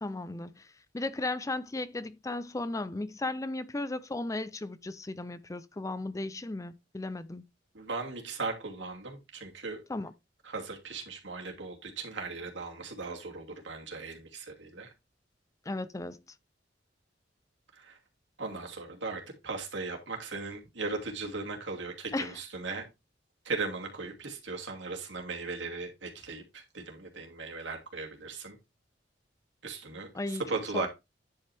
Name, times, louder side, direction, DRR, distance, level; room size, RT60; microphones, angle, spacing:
voice 1, 0.0-0.7 0.9-7.4 9.9-10.1 15.7-16.2 22.1-22.4 30.1-30.4 30.7-30.9, left 2 dB, 20° left, 0.4 m, -35 dB
voice 2, 7.7-9.8 10.4-14.9 17.7-18.0 18.4-22.9 23.4-28.6 29.6-30.9, right 3 dB, 75° right, 2.7 m, -38 dB
10.0 x 5.4 x 3.5 m
head